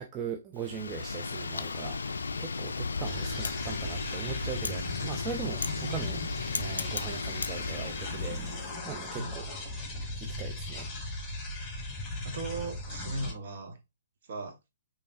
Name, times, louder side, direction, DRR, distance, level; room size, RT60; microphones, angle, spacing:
voice 1, 0.0-6.2 6.5-9.5 10.2-10.9, right 7 dB, 20° right, 0.4 m, -40 dB
Wind, 0.6-8.7, left 4 dB, 65° left, 0.4 m, -35 dB
sound 1, 3.0-13.3, left 2 dB, 15° left, 1.4 m, -38 dB
voice 2, 12.2-13.8 14.3-14.5, right 2 dB, 45° right, 1.0 m, -37 dB
5.2 x 3.1 x 2.6 m
figure-of-eight pair, 125°, 0 cm